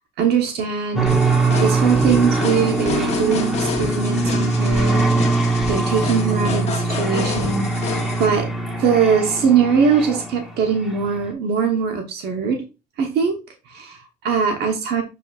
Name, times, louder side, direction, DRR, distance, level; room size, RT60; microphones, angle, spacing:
voice 1, 0.2-1.3 1.6-5.3 5.7-8.5 8.8-12.6 13.0-13.3 13.7-15.0, right 6 dB, 75° right, 3 dB, 1.2 m, -21 dB
sound 1, 1.0-10.5, right 3 dB, ahead, 1.6 m, -22 dB
sound 2, 1.1-8.3, left 5 dB, 40° left, 1.3 m, -29 dB
7.2 x 5.2 x 2.5 m, 0.29 s
cardioid pair, 110°, 17 cm